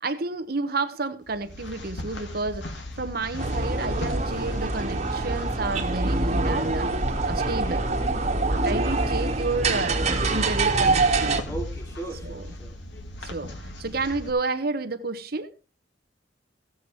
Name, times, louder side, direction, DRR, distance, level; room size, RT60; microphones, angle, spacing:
voice 1, 0.0-6.9 7.2-7.8 8.5-11.4 12.2-12.4 13.2-13.5 13.8-15.5, right 3 dB, 55° right, 1.0 m, -30 dB
sound 1, 1.2-14.3, left 1 dB, 65° left, 2.1 m, -39 dB
sound 2, 3.4-11.4, right 3 dB, 35° right, 1.9 m, -25 dB
voice 2, 7.3-8.0 11.5-12.8, right 2 dB, 15° left, 2.4 m, -38 dB
16.0 x 8.0 x 4.7 m
head